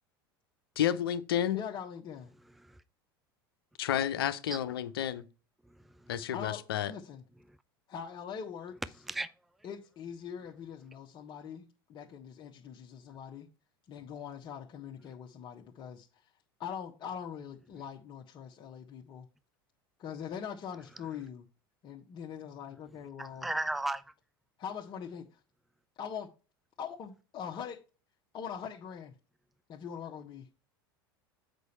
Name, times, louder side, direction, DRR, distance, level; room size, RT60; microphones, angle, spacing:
voice 1, 0.8-1.6 3.8-5.3 6.1-6.9, left 10 dB, 75° left, 0.8 m, -31 dB
voice 2, 1.5-2.3 6.3-6.6 6.9-7.2 7.9-8.8 9.6-13.5 13.9-16.1 16.6-19.3 20.0-21.4 21.8-23.5 24.6-25.3 26.0-26.3 26.8-27.8 28.3-29.1 29.7-30.5, left 7 dB, 40° left, 1.2 m, -42 dB
voice 3, 2.4-2.8 4.5-4.6 5.6-6.2 7.5-7.6 9.0-9.3 21.0-21.1 23.2-24.1, right 2 dB, ahead, 0.4 m, -37 dB
8.1 x 5.4 x 4.3 m
hypercardioid pair, 80°, 12 cm